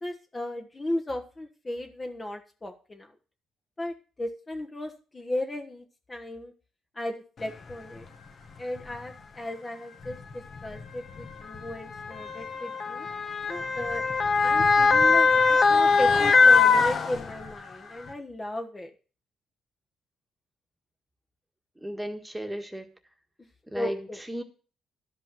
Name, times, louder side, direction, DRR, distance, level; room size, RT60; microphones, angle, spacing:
voice 1, 0.0-3.1 3.8-6.5 6.9-8.1 8.6-13.1 13.5-14.0 14.4-18.9 23.7-24.2, left 1 dB, 25° left, 3 dB, 1.2 m, -35 dB
Motor vehicle (road) / Siren, 7.7-7.8 8.8-9.0 10.0-17.6 18.1-18.2, left 4 dB, 50° left, 1.4 m, -22 dB
voice 2, 21.8-22.9 23.7-24.4, equal, 10° right, 5 dB, 1.6 m, -35 dB
12.5 x 5.4 x 7.7 m, 0.38 s
cardioid pair, 90°, 0 cm